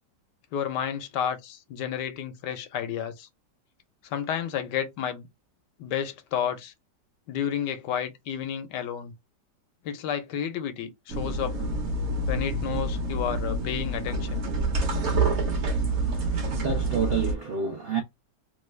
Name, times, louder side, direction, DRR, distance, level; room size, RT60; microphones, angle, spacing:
voice 1, 0.5-3.3 4.0-5.3 5.8-6.7 7.3-9.1 9.8-11.6 12.3-14.5, left 9 dB, 80° left, 1.3 m, -31 dB
sound 1, 11.1-17.4, right 2 dB, 50° right, 0.9 m, -27 dB
voice 2, 15.9-18.0, right 6 dB, 75° right, 0.5 m, -30 dB
3.2 x 2.3 x 3.2 m
omnidirectional pair, 1.9 m